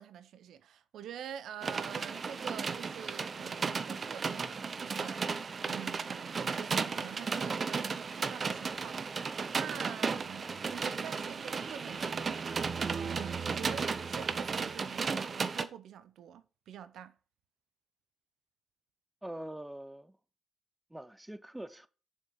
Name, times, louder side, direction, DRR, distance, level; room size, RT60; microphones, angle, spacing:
voice 1, 0.0-12.7 12.9-17.2, right 9 dB, 85° right, 0.6 m, -47 dB
sound 1, 1.6-15.7, right 5 dB, 45° right, 0.7 m, -34 dB
voice 2, 19.2-20.2 20.9-21.9, right 1 dB, 10° right, 0.6 m, -43 dB
7.1 x 6.8 x 4.6 m
cardioid pair, 105°, 0 cm